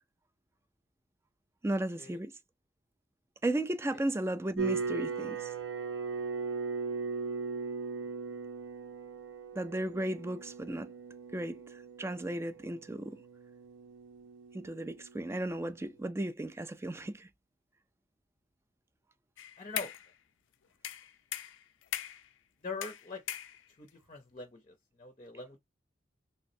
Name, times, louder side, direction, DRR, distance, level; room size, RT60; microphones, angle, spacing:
voice 1, 1.6-2.3 3.4-5.5 9.6-10.9 11.3-13.2 14.5-17.3, right 1 dB, 15° right, 0.3 m, -35 dB
sound 1, 4.6-15.6, right 5 dB, 75° right, 0.8 m, -39 dB
sound 2, 19.4-20.1 20.8-22.3 22.8-23.9, left 11 dB, 85° left, 0.4 m, -39 dB
voice 2, 19.6-19.9 22.6-23.2 23.8-25.6, left 3 dB, 30° left, 0.6 m, -43 dB
3.3 x 3.0 x 2.6 m
head